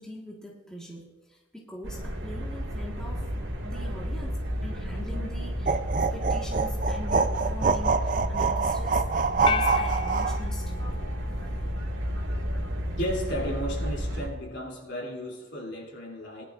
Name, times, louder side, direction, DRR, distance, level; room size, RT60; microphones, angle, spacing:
voice 1, 0.0-3.3 3.6-5.8 6.1-10.9, equal, 5° left, -3 dB, 1.5 m, -42 dB
sound 1, 1.8-14.3, equal, 80° right, 1.8 m, -31 dB
sound 2, 5.7-10.4, right 5 dB, 40° right, 0.4 m, -25 dB
sound 3, 9.5-11.9, left 5 dB, 25° left, 0.3 m, -34 dB
voice 2, 13.0-16.4, equal, 70° left, -1 dB, 3.0 m, -34 dB
19.0 x 11.0 x 2.5 m, 1.2 s
head